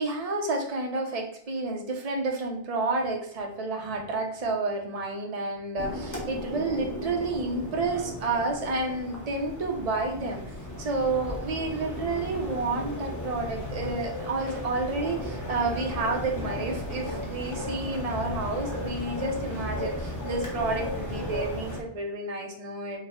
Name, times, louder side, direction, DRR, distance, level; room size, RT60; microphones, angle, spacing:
voice 1, 0.0-10.4 10.8-23.0, right 3 dB, 35° right, 1 dB, 0.7 m, -30 dB
sound 1, 5.8-21.8, left 1 dB, 15° left, 0.8 m, -35 dB
5.5 x 2.2 x 3.6 m, 0.70 s
omnidirectional pair, 1.3 m